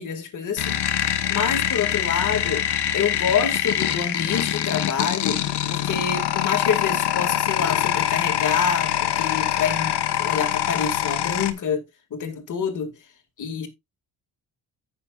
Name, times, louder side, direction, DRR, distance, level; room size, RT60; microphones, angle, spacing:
voice 1, 0.0-2.6 2.9-5.4 5.7-11.8 12.1-12.9 13.4-13.7, left 7 dB, 45° left, 2.3 m, -27 dB
sound 1, 0.6-11.5, left 11 dB, 70° left, 1.3 m, -24 dB
14.5 x 6.4 x 2.4 m
wide cardioid pair, 175°, 41 cm